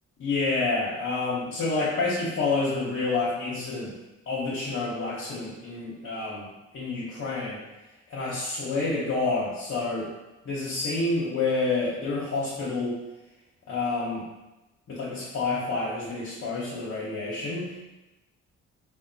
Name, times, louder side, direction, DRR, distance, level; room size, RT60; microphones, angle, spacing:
voice 1, 0.2-3.9 4.3-6.5 6.7-7.6 8.1-10.1 10.4-13.0 13.7-14.3 14.9-17.7, left 3 dB, 55° left, -7 dB, 1.0 m, -28 dB
3.5 x 2.3 x 4.0 m, 1.0 s
cardioid pair, 90°, 30 cm